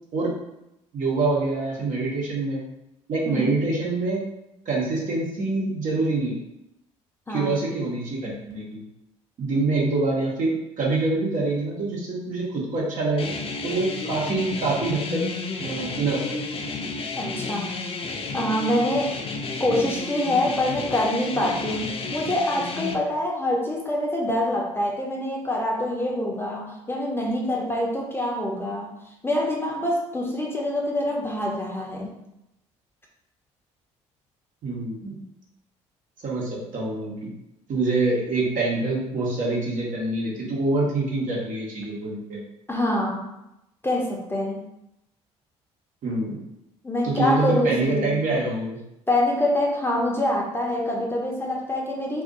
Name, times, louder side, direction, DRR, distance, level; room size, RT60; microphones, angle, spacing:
voice 1, 0.9-2.6 3.1-4.2 4.6-6.4 7.3-8.8 9.4-13.3 13.6-15.3 15.6-16.3 34.6-35.1 36.2-37.3 37.7-42.4 46.0-46.4 47.0-48.8, right 3 dB, 55° right, -4 dB, 1.2 m, -25 dB
sound 1, 13.2-23.0, left 3 dB, 35° left, 0.5 m, -32 dB
voice 2, 17.2-17.7 18.3-19.2 19.6-28.9 29.2-32.2 42.7-43.3 43.8-44.6 46.8-48.3 49.1-52.2, left 1 dB, 15° left, -1 dB, 0.9 m, -25 dB
2.7 x 2.5 x 3.9 m, 0.86 s
hypercardioid pair, 55°, 16 cm